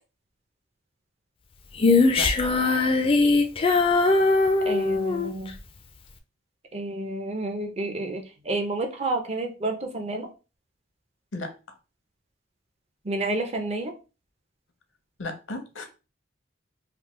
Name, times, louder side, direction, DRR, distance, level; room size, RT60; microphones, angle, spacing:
Female singing, 1.8-5.3, left 3 dB, 30° left, 0.3 m, -20 dB
voice 1, 2.1-2.5 11.3-11.5 15.2-15.8, left 2 dB, 85° left, 6 dB, 0.7 m, -34 dB
voice 2, 4.7-5.5 6.7-10.3 13.1-13.9, right 2 dB, 30° right, 4 dB, 0.5 m, -30 dB
3.3 x 2.1 x 3.0 m, 0.32 s
head